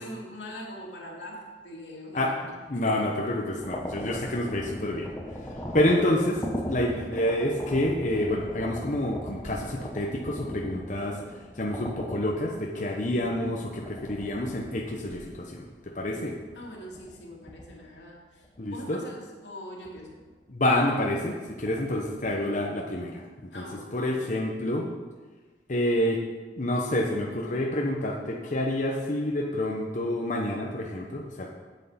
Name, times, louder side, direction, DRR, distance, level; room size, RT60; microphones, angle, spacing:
voice 1, 0.0-2.3 2.7-3.0 16.5-20.2 23.5-24.2, left 1 dB, 85° left, -2 dB, 2.6 m, -42 dB
voice 2, 2.7-5.1 5.5-11.2 11.6-15.7 15.9-16.4 18.6-19.0 20.5-23.2 23.5-23.6 23.9-24.9 25.7-26.2 26.6-31.5, left 1 dB, 45° left, -1 dB, 0.9 m, -28 dB
sound 1, 3.6-18.0 18.4-18.7 19.9-20.4 21.5-22.3, equal, 15° left, 1.0 m, -40 dB
9.0 x 8.1 x 5.8 m, 1.3 s
head